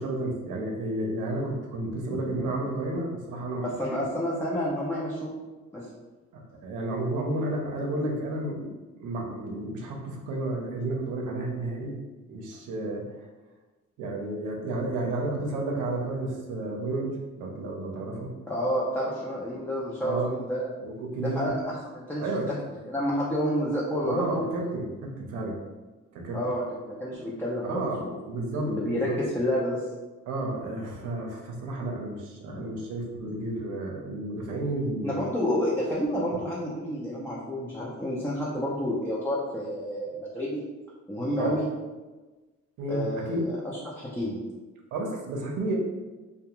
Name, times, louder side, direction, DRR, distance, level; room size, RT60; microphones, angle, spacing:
voice 1, 0.0-3.7 4.0-4.1 6.6-8.7 9.0-12.0 12.3-13.1 14.0-18.3 20.0-20.3 20.8-21.5 22.2-22.5 24.0-25.6 26.1-26.4 27.6-29.1 30.3-35.2 41.4-41.5 42.8-43.5 44.9-45.8, right 2 dB, 90° right, 0 dB, 0.6 m, -31 dB
voice 2, 3.6-5.3 5.7-5.9 18.5-20.7 21.2-24.5 26.3-28.2 28.6-29.8 32.5-32.6 35.0-40.6 41.1-41.6 42.9-44.4, equal, 5° left, -7 dB, 0.4 m, -29 dB
2.3 x 2.2 x 2.9 m, 1.2 s
cardioid pair, 90°, 30 cm